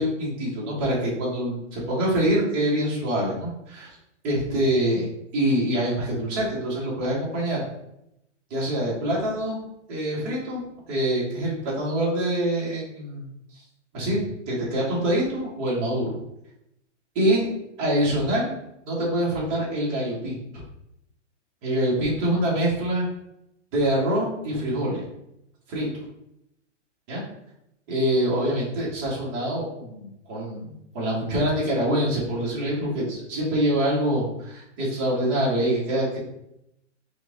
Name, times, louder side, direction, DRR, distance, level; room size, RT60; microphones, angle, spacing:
voice 1, 0.0-3.9 4.2-5.0 5.3-7.6 8.5-9.6 9.9-13.3 13.9-16.2 17.1-17.4 17.8-18.6 18.9-20.4 21.6-23.1 23.7-25.0 25.7-25.9 27.1-27.2 27.9-36.2, right 1 dB, 25° right, -5 dB, 1.5 m, -25 dB
4.5 x 2.5 x 3.6 m, 0.81 s
hypercardioid pair, 155°, 37 cm